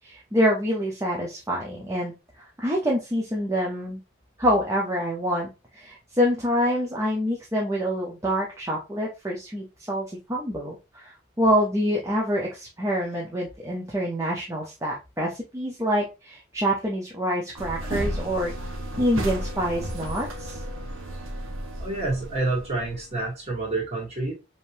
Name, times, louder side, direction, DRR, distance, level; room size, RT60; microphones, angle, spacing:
voice 1, 0.0-4.0 4.4-18.5 19.0-20.6, equal, 15° right, -3 dB, 0.7 m, -26 dB
sound 1, 17.6-23.3, right 1 dB, 80° right, 0.8 m, -33 dB
voice 2, 21.8-24.3, right 2 dB, 30° right, -3 dB, 1.7 m, -28 dB
5.1 x 2.8 x 2.6 m, 0.27 s
head